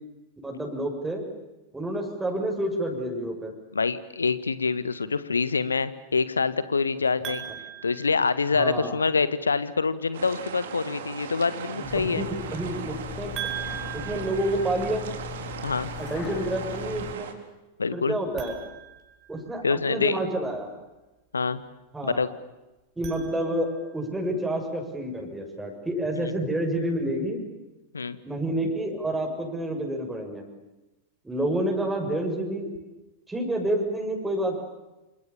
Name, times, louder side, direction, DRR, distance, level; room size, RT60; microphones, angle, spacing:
voice 1, 0.4-1.2 1.7-3.5 8.6-8.9 11.7-11.9 12.2-12.3 12.5-13.3 13.9-15.0 16.0-17.3 17.9-18.5 19.3-20.7 21.9-22.2 23.0-27.4 28.2-30.4 31.2-32.7 33.3-34.6, right 1 dB, 10° right, 1 dB, 7.2 m, -29 dB
voice 2, 3.7-7.4 7.8-12.3 15.6-15.9 17.8-18.2 19.6-20.2 21.3-21.6 22.0-22.3 26.2-26.3 27.9-28.2, left 4 dB, 75° left, 14 dB, 1.7 m, -26 dB
sound 1, 7.2-8.9 13.3-15.4 18.3-19.9 22.8-24.0, right 11 dB, 30° right, 5.8 m, -40 dB
sound 2, 10.1-17.3, right 8 dB, 60° right, 3.9 m, -38 dB
sound 3, 11.8-17.1, left 9 dB, 35° left, 2.4 m, -39 dB
28.5 x 27.5 x 7.2 m, 1.0 s
figure-of-eight pair, 90°, 0 cm